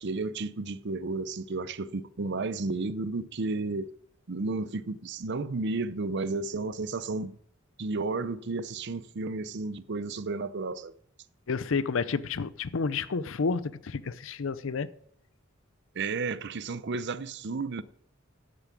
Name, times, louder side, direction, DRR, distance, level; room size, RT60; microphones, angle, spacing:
voice 1, 0.0-3.9 4.3-7.4 7.8-10.9 15.9-17.8, right 3 dB, 60° right, 0.6 m, -32 dB
voice 2, 11.5-14.9, left 4 dB, 70° left, 0.6 m, -30 dB
12.0 x 7.2 x 8.4 m
head